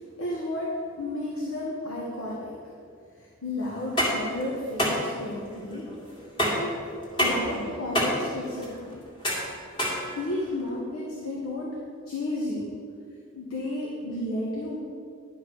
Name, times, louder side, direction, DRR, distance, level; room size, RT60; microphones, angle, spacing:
voice 1, 0.0-2.5 3.2-5.9 6.5-6.8 7.1-9.0 10.1-11.8 12.1-12.7 13.3-14.8, left 1 dB, 90° left, -4 dB, 1.5 m, -32 dB
sound 1, 3.7-10.7, equal, 20° left, 1.8 m, -28 dB
10.5 x 5.0 x 6.2 m, 2.3 s
head